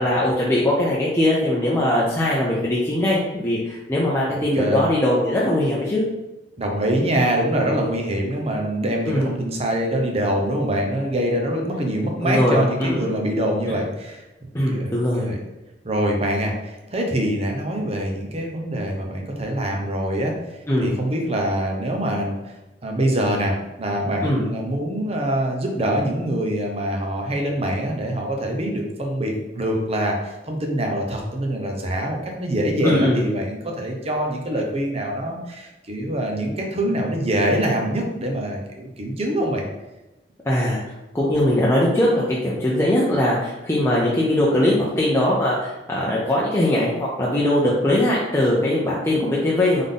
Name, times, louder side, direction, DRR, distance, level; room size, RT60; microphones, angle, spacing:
voice 1, 0.0-6.0 9.0-9.3 12.2-13.1 13.7-13.8 14.5-15.3 20.7-20.9 24.2-24.4 32.8-33.2 40.5-49.8, left 1 dB, 15° left, -6 dB, 0.6 m, -21 dB
voice 2, 6.6-14.2 14.7-14.9 15.2-15.4 15.8-20.3 20.8-22.3 22.8-39.6, right 1 dB, 35° right, 1 dB, 0.8 m, -24 dB
3.7 x 3.6 x 3.8 m, 1.0 s
head